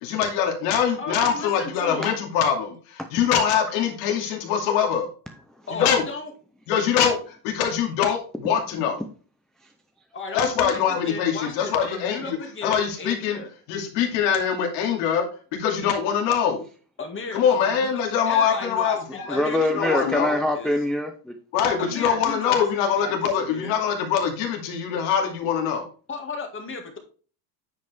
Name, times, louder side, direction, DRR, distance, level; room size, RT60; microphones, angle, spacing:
voice 1, 0.0-5.1 5.7-6.0 6.7-9.0 10.3-12.4 12.6-13.4 13.7-16.6 17.3-19.4 19.7-20.3 21.5-25.9, left 7 dB, 75° left, 3 dB, 2.5 m, -23 dB
voice 2, 1.0-2.1 5.7-6.3 10.1-13.5 17.0-20.0 20.3-20.7 21.8-23.8 26.1-27.0, left 4 dB, 25° left, 4 dB, 2.0 m, -35 dB
voice 3, 5.3-5.7 8.7-9.1 9.6-9.7 19.3-21.4, left 1 dB, ahead, 4 dB, 0.4 m, -25 dB
9.4 x 5.2 x 3.4 m, 0.39 s
supercardioid pair, 130°, 49 cm